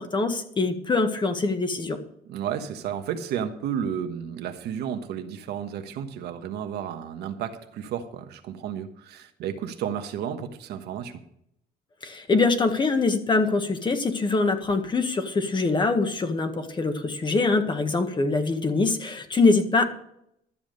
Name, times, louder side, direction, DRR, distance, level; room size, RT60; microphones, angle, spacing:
voice 1, 0.0-2.0 12.0-19.8, left 3 dB, 25° left, 7 dB, 1.7 m, -23 dB
voice 2, 2.2-11.2, right 8 dB, 75° right, 7 dB, 1.3 m, -32 dB
12.5 x 7.2 x 6.6 m, 0.73 s
cardioid pair, 110°, 17 cm